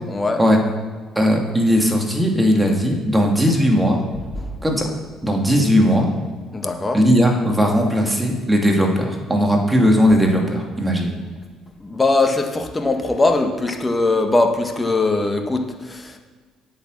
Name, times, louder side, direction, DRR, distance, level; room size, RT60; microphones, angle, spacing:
voice 1, 0.1-0.4 4.4-4.5 6.5-7.0 11.1-11.3 11.8-16.2, left 2 dB, 20° left, 5 dB, 1.5 m, -21 dB
voice 2, 1.2-4.0 4.6-4.9 5.2-6.1 6.9-11.1, equal, 10° right, 1 dB, 2.5 m, -17 dB
8.6 x 8.1 x 6.5 m, 1.5 s
hypercardioid pair, 60°, 0 cm